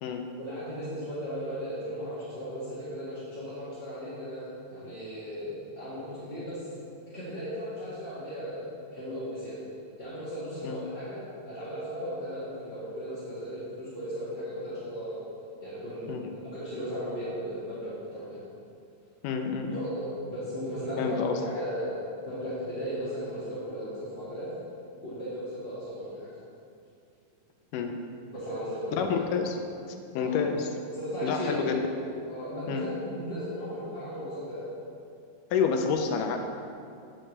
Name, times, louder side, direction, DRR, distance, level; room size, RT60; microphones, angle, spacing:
voice 1, 0.4-6.7 7.1-9.6 10.0-11.2 11.4-15.2 15.6-18.4 19.7-22.0 22.2-24.5 25.0-26.3 28.3-29.2 30.2-30.4 30.9-31.8 32.3-34.7, equal, 25° left, -13 dB, 1.5 m, -36 dB
voice 2, 19.2-19.9 21.0-21.4 27.7-28.0 28.9-29.6 30.1-30.7 31.2-31.7 32.7-32.9 35.5-36.4, left 6 dB, 80° left, 4 dB, 2.1 m, -28 dB
8.8 x 7.6 x 3.3 m, 2.5 s
omnidirectional pair, 3.9 m